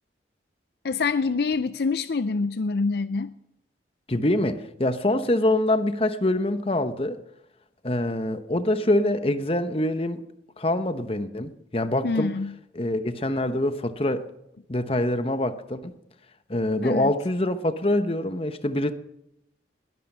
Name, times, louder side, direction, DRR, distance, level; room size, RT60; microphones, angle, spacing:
voice 1, 0.8-3.3 12.0-12.5 16.8-17.1, left 4 dB, 60° left, 0.5 m, -26 dB
voice 2, 4.1-7.2 7.8-10.2 10.6-12.3 12.7-14.3 14.7-15.9 16.5-18.9, left 1 dB, 30° left, 0.9 m, -25 dB
20.5 x 12.0 x 5.5 m
head